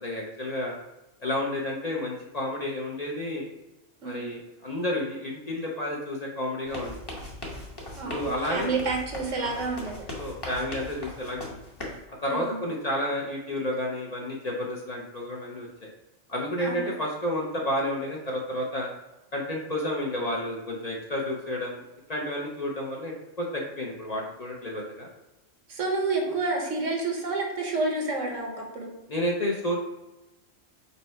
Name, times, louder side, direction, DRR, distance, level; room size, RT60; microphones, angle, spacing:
voice 1, 0.0-0.8 1.2-3.4 4.0-7.0 8.1-8.7 9.3-9.7 10.2-11.5 12.2-15.7 16.3-18.9 19.3-21.8 22.1-25.1 29.1-29.8, left 1 dB, 45° left, -2 dB, 0.6 m, -31 dB
voice 2, 4.0-4.3 8.0-10.1 12.3-12.6 16.6-16.9 25.7-28.9, right 3 dB, 85° right, 1 dB, 1.3 m, -29 dB
sound 1, 6.7-12.0, left 1 dB, 25° left, 0.8 m, -39 dB
5.4 x 2.2 x 4.3 m, 1.0 s
omnidirectional pair, 1.3 m